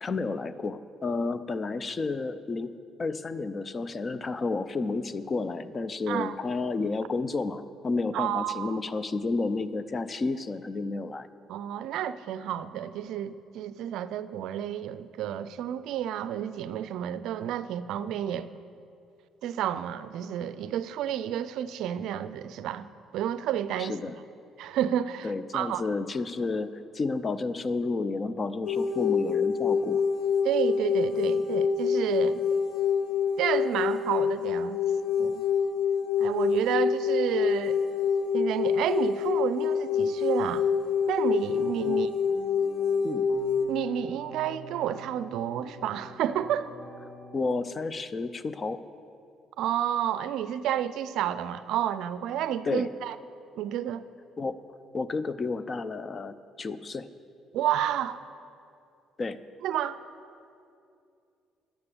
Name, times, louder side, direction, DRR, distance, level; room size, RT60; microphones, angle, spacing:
voice 1, 0.0-2.7 3.0-11.3 23.8-24.2 25.2-30.0 41.8-42.0 43.0-43.3 47.3-48.8 52.6-52.9 54.4-54.6 54.9-57.1 59.2-59.4, left 3 dB, 35° left, 14 dB, 0.6 m, -31 dB
voice 2, 8.1-8.8 11.5-18.5 19.4-22.9 23.1-24.0 24.6-25.8 30.4-32.4 33.4-34.8 35.2-35.4 36.2-37.8 38.3-40.7 41.1-42.1 43.7-46.7 49.6-53.2 53.6-54.0 57.5-58.2 59.6-60.0, right 10 dB, 70° right, 14 dB, 0.4 m, -30 dB
sound 1, 28.6-43.7, left 6 dB, 70° left, 1.5 m, -26 dB
sound 2, 41.2-47.9, equal, 55° left, 1.7 m, -46 dB
10.0 x 9.6 x 7.0 m, 2.5 s
hypercardioid pair, 55°, 0 cm